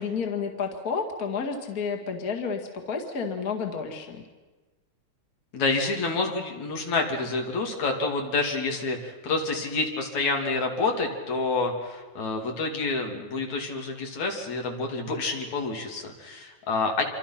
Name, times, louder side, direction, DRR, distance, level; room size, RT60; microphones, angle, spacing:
voice 1, 0.0-4.2, left 5 dB, 35° left, 3 dB, 2.2 m, -31 dB
voice 2, 5.5-17.0, left 3 dB, 70° left, 2 dB, 4.1 m, -28 dB
27.5 x 25.0 x 5.9 m, 1.3 s
omnidirectional pair, 3.4 m